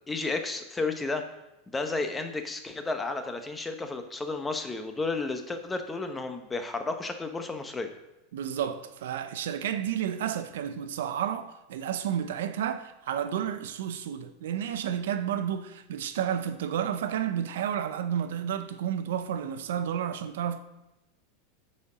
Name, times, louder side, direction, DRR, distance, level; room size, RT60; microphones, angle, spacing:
voice 1, 0.1-1.2 1.7-7.9, left 3 dB, 10° left, 0.8 m, -32 dB
voice 2, 8.3-20.6, right 9 dB, 85° right, 0.6 m, -31 dB
9.3 x 4.3 x 5.0 m
supercardioid pair, 140°, 0 cm